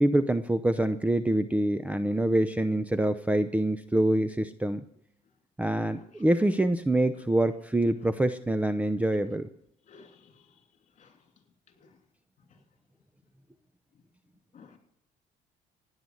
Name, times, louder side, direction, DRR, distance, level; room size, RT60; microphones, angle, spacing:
voice 1, 0.0-4.8 5.6-9.5, right 1 dB, 10° right, 0.6 m, -25 dB
voice 2, 9.9-10.3 11.0-11.1 14.5-14.8, left 5 dB, 45° left, 3.1 m, -53 dB
16.5 x 9.7 x 7.8 m
cardioid pair, 110°, 17 cm